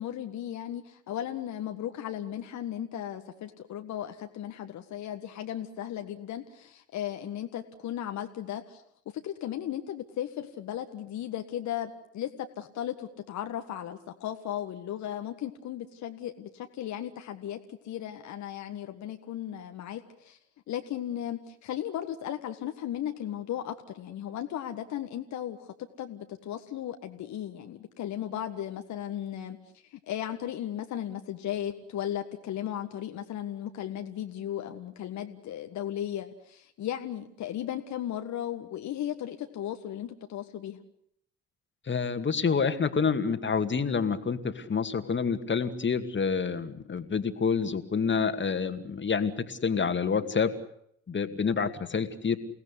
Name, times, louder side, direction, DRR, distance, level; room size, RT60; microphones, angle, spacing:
voice 1, 0.0-8.8 9.1-17.6 17.8-20.4 20.7-29.6 29.9-40.8, left 11 dB, 55° left, 6 dB, 1.7 m, -36 dB
voice 2, 41.9-50.5 51.1-52.4, left 5 dB, 35° left, 9 dB, 2.3 m, -28 dB
29.5 x 18.0 x 8.4 m, 0.71 s
figure-of-eight pair, 50°, 34 cm